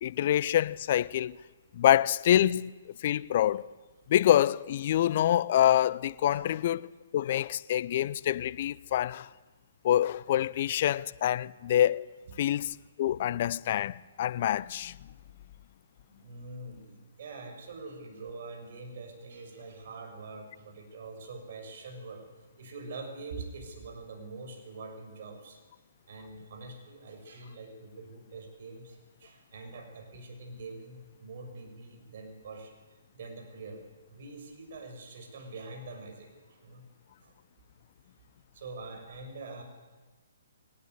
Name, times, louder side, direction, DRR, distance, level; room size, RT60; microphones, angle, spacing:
voice 1, 0.0-1.4 1.7-3.7 4.1-6.8 7.1-9.3 9.8-12.1 12.4-15.0, left 11 dB, 45° left, 0.7 m, -26 dB
voice 2, 16.1-22.3 22.6-25.6 26.1-33.8 34.1-36.9 37.2-37.3 38.5-39.6, right 3 dB, 50° right, 6.3 m, -44 dB
22.5 x 19.0 x 9.7 m
figure-of-eight pair, 130°, 0 cm